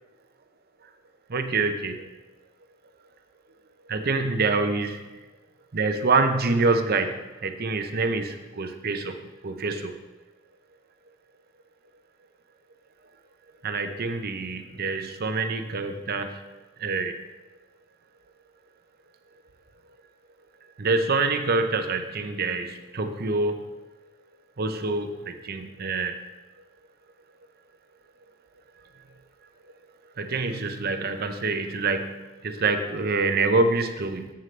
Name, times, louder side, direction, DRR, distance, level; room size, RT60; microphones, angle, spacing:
voice 1, 1.3-2.1 3.9-5.0 5.7-9.1 9.4-9.9 13.6-16.4 16.8-17.1 20.8-23.6 24.6-26.2 30.2-32.1 32.4-34.3, right 3 dB, 45° right, 7 dB, 0.7 m, -26 dB
9.1 x 7.9 x 3.3 m, 1.1 s
head